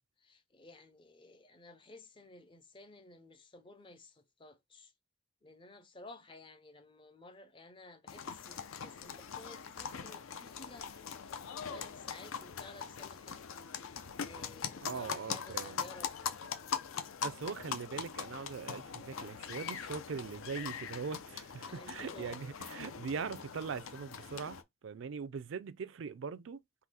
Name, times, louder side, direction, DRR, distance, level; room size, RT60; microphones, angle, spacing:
voice 1, 0.2-4.9 5.4-11.1 11.5-13.4 14.2-16.2 21.6-22.4, left 2 dB, 25° left, 0.5 m, -54 dB
sound 1, 8.1-24.6, left 6 dB, 75° left, 0.6 m, -42 dB
voice 2, 14.8-15.8 17.2-26.6, right 5 dB, 60° right, 0.4 m, -41 dB
3.8 x 2.8 x 4.1 m
head